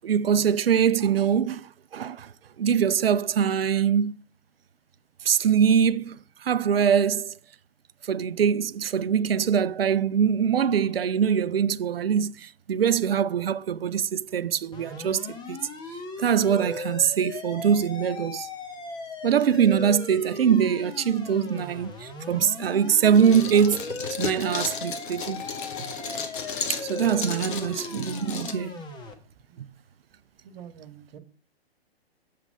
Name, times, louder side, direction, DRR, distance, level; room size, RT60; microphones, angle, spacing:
voice 1, 0.0-2.3 2.6-4.1 5.2-7.3 8.0-15.6 16.2-18.5 19.2-23.9 24.2-25.4 26.7-28.8 29.6-29.7, right 8 dB, 70° right, 0.6 m, -23 dB
sound 1, 14.7-29.1, left 3 dB, 15° left, 1.2 m, -38 dB
sound 2, 23.1-28.5, left 5 dB, 55° left, 1.6 m, -34 dB
voice 2, 30.4-31.2, right 9 dB, 45° right, 1.6 m, -46 dB
7.5 x 5.9 x 7.8 m
figure-of-eight pair, 120°, 31 cm